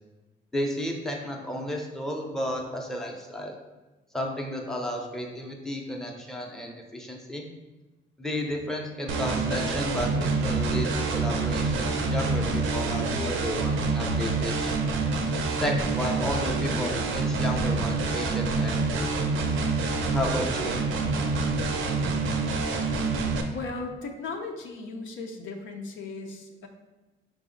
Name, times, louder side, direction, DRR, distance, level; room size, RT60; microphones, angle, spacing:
voice 1, 0.5-3.6 4.1-7.5 8.2-14.7 15.6-19.3 20.1-20.8, equal, ahead, 0 dB, 0.6 m, -32 dB
sound 1, 9.1-23.4, right 3 dB, 75° right, 0.5 m, -27 dB
voice 2, 23.5-26.7, left 3 dB, 80° left, 2 dB, 0.6 m, -37 dB
4.9 x 2.0 x 3.8 m, 1.1 s
cardioid pair, 90°, 20 cm